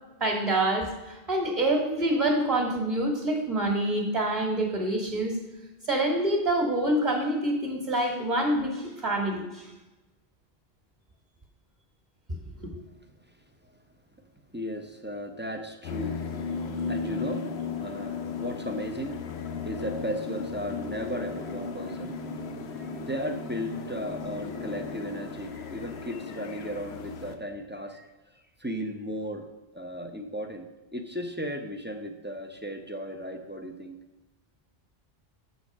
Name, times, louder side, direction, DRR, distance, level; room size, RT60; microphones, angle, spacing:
voice 1, 0.2-5.3 5.9-9.7 12.6-12.7, right 1 dB, 35° right, 0 dB, 1.5 m, -26 dB
voice 2, 14.5-16.2 16.9-17.5 17.8-19.2 19.6-22.2 22.7-28.1 28.6-29.5 29.7-34.0, equal, 15° right, 4 dB, 0.5 m, -35 dB
sound 1, 15.8-27.4, left 5 dB, 85° left, 1.0 m, -36 dB
7.7 x 4.1 x 6.1 m, 1.1 s
omnidirectional pair, 1.0 m